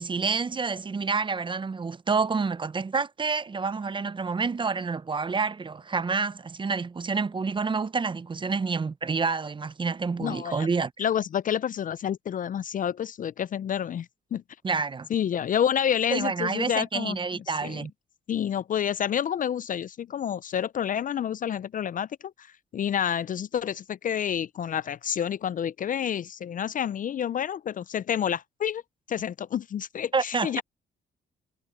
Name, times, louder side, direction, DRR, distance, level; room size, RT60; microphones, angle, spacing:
voice 1, 0.0-10.9 14.6-15.1 16.1-17.9 30.1-30.6, right 4 dB, 25° right, 0.6 m, -28 dB
voice 2, 10.2-10.7 11.0-14.4 15.1-17.2 17.6-17.9 18.3-22.1 22.4-22.5 22.7-28.8 29.1-30.6, left 9 dB, 45° left, 0.4 m, -29 dB
cardioid pair, 90°, 20 cm